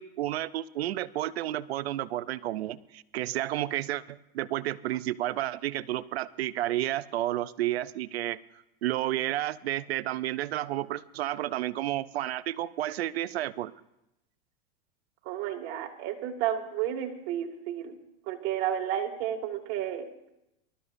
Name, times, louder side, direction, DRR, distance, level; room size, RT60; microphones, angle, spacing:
voice 1, 0.0-8.4 8.8-13.7, right 14 dB, 90° right, 16 dB, 0.7 m, -31 dB
voice 2, 15.3-18.0 18.3-20.1, right 10 dB, 55° right, 2 dB, 2.3 m, -32 dB
24.5 x 13.0 x 2.7 m, 0.87 s
supercardioid pair, 120°, 30 cm